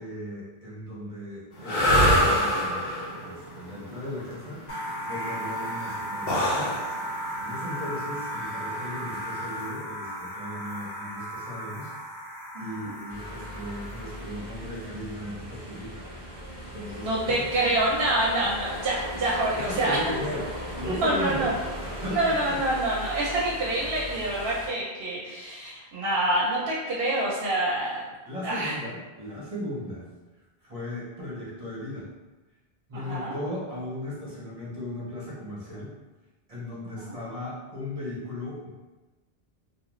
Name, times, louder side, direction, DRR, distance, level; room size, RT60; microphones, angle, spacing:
voice 1, 0.0-4.6 5.0-6.8 7.1-11.9 12.6-16.0 16.7-17.3 19.5-20.5 20.8-21.5 21.8-22.6 28.3-30.0 30.6-32.1 32.9-35.9 36.5-38.7, left 1 dB, 40° right, -7 dB, 0.8 m, -37 dB
sound 1, 1.6-9.6, equal, 50° left, 0.9 m, -26 dB
sound 2, 4.7-14.4, equal, 85° left, 1.0 m, -35 dB
voice 2, 12.5-12.9 17.0-20.1 20.8-21.5 22.1-28.1 28.4-28.8 32.9-33.4 36.9-37.2, right 1 dB, 70° right, -6 dB, 0.8 m, -27 dB
sound 3, 13.1-24.7, equal, 15° left, 1.1 m, -38 dB
2.4 x 2.3 x 3.0 m, 1.2 s
omnidirectional pair, 1.1 m